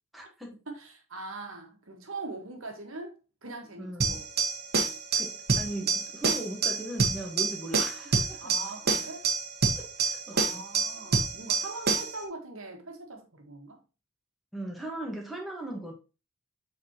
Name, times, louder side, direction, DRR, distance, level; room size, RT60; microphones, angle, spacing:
voice 1, 0.1-0.5 3.8-4.2 5.1-8.5 9.7-10.6 14.5-15.9, right 1 dB, ahead, 1.3 m, -38 dB
voice 2, 0.7-4.3 8.4-9.3 10.3-13.8, right 3 dB, 65° right, 1.5 m, -42 dB
sound 1, 4.0-12.2, right 4 dB, 45° right, 1.2 m, -28 dB
7.5 x 4.2 x 2.9 m
head